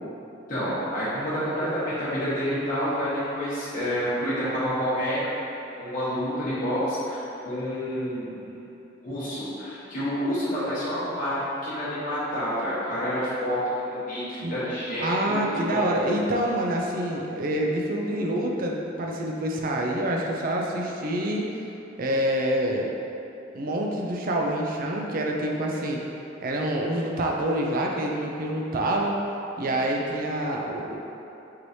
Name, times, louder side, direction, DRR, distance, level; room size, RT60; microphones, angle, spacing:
voice 1, 0.5-5.3 5.8-8.6 9.0-15.0 15.5-15.9, equal, 45° left, -12 dB, 1.2 m, -28 dB
voice 2, 15.0-21.5 22.0-22.9 23.5-26.0 26.4-29.2 29.6-31.0, right 1 dB, 45° right, 0 dB, 0.4 m, -26 dB
4.7 x 3.1 x 2.7 m, 2.9 s
head